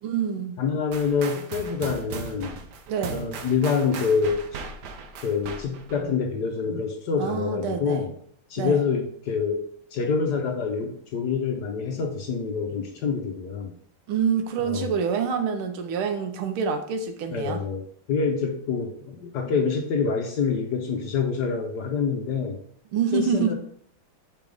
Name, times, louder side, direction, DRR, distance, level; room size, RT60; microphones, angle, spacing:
voice 1, 0.0-0.6 2.9-3.3 7.2-8.0 8.6-8.8 14.1-17.6 22.9-23.5, right 6 dB, 85° right, 1.7 m, -26 dB
voice 2, 0.6-2.6 3.0-4.6 5.2-8.1 8.5-9.6 9.9-13.7 14.6-14.9 17.3-17.8 18.1-22.6 23.1-23.5, left 5 dB, 65° left, 1.1 m, -26 dB
sound 1, 0.9-6.0, right 5 dB, 65° right, 1.1 m, -38 dB
5.1 x 3.6 x 5.1 m
omnidirectional pair, 2.3 m